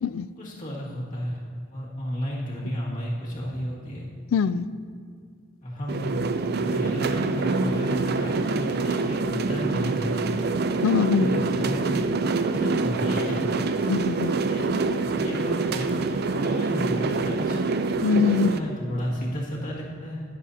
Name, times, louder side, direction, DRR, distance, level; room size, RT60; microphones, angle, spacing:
voice 1, 0.4-1.4 1.7-4.0 5.6-10.3 11.0-12.1 12.5-13.5 14.4-17.6 18.4-20.2, equal, 40° left, -5 dB, 2.1 m, -32 dB
voice 2, 4.3-4.7 10.8-11.4 13.9-14.3 18.0-18.5, left 5 dB, 70° left, 15 dB, 0.3 m, -22 dB
sound 1, 5.9-18.6, right 3 dB, 50° right, 0.4 m, -26 dB
19.5 x 7.6 x 2.8 m, 2.1 s
head